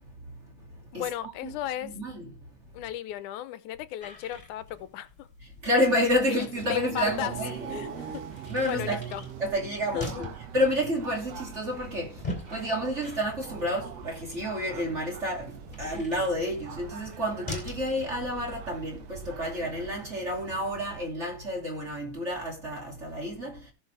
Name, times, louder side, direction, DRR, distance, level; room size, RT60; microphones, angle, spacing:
voice 1, 0.9-2.0 2.7-5.3 6.3-7.4 7.7-9.2 9.9-10.4, left 12 dB, 90° left, 2.2 m, -35 dB
voice 2, 1.8-2.3 5.6-8.1 8.5-9.0 9.4-12.1 12.5-23.6, equal, 25° right, 2.7 m, -30 dB
sound 1, 4.0-17.9, left 2 dB, 15° left, 3.5 m, -44 dB
sound 2, 6.5-21.0, right 8 dB, 65° right, 2.0 m, -43 dB
18.0 x 6.1 x 3.4 m
omnidirectional pair, 3.4 m